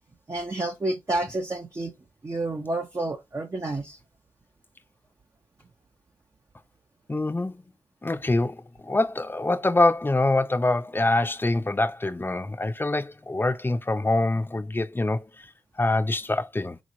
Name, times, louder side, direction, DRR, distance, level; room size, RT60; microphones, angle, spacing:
voice 1, 0.3-1.9 2.2-4.0, right 2 dB, 35° right, 0.7 m, -29 dB
voice 2, 7.1-7.6 8.0-15.5 15.8-16.8, left 2 dB, 25° left, 0.6 m, -25 dB
3.9 x 3.0 x 2.6 m
cardioid pair, 45°, 9 cm